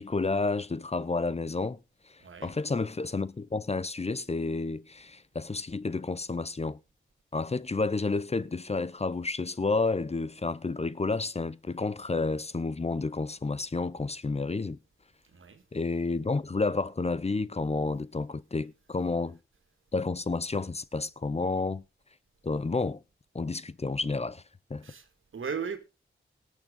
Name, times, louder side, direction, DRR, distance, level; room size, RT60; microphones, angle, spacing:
voice 1, 0.0-1.8 2.1-6.8 7.3-14.8 15.7-19.4 19.9-21.8 22.4-23.0 23.3-24.4 24.7-24.9, left 3 dB, 30° left, 0.7 m, -30 dB
voice 2, 2.2-2.6 15.2-15.6 24.8-25.8, right 6 dB, 75° right, 2.1 m, -37 dB
18.0 x 6.4 x 5.3 m
cardioid pair, 60°, 21 cm